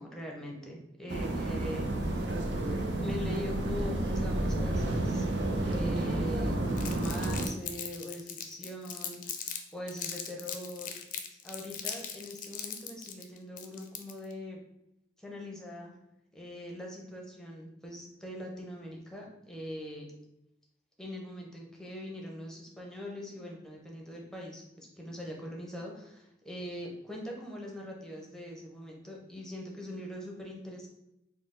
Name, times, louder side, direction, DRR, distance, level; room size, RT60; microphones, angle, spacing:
voice 1, 0.0-2.3 3.0-5.3 5.6-10.9 11.4-14.6 15.2-15.9 16.3-20.1 21.0-30.9, left 1 dB, 5° left, -1 dB, 0.6 m, -42 dB
sound 1, 1.1-7.5, right 1 dB, 75° right, 0.5 m, -31 dB
Crumpling crinkling, 6.8-9.6 9.9-14.3, left 8 dB, 50° left, 0.4 m, -39 dB
4.1 x 2.1 x 3.7 m, 0.84 s
head